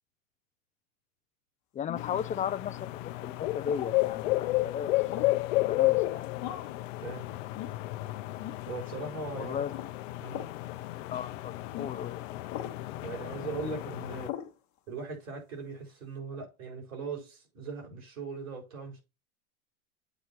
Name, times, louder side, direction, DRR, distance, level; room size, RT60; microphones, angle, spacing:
voice 1, 1.7-2.8 3.2-5.0 5.6-6.3 9.4-9.8 11.1-12.4, left 8 dB, 20° left, 0.5 m, -35 dB
sound 1, 1.9-2.2 3.7-4.0 5.1-5.4 6.4-6.8 7.5-7.8 8.4-8.6 9.7-9.9 10.3-10.6 11.7-11.9 12.5-12.8 14.3-14.5, left 11 dB, 40° left, 1.2 m, -39 dB
sound 2, 2.0-14.3, left 19 dB, 65° left, 0.8 m, -32 dB
voice 2, 8.7-9.7 10.2-10.5 13.0-14.4 14.9-19.0, right 4 dB, 80° right, 4.7 m, -39 dB
8.2 x 2.8 x 5.9 m
hypercardioid pair, 115°, 42 cm